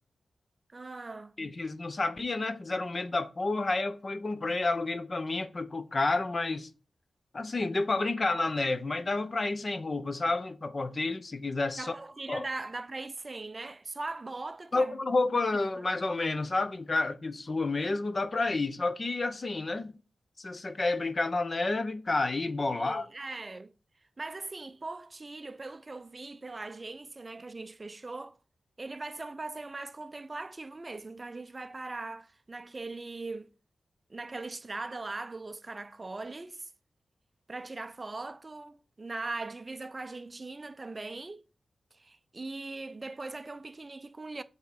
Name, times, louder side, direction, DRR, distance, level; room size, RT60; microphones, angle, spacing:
voice 1, 0.7-1.3 11.8-15.0 22.7-23.7 24.2-28.4 28.8-33.5 34.1-36.7 37.5-41.4 41.9-44.4, right 3 dB, 30° right, 0.5 m, -40 dB
voice 2, 1.4-6.7 7.3-11.9 12.3-12.4 14.7-19.9 20.4-23.1, left 3 dB, 35° left, 0.8 m, -30 dB
8.0 x 3.7 x 5.6 m
wide cardioid pair, 125°, 0 cm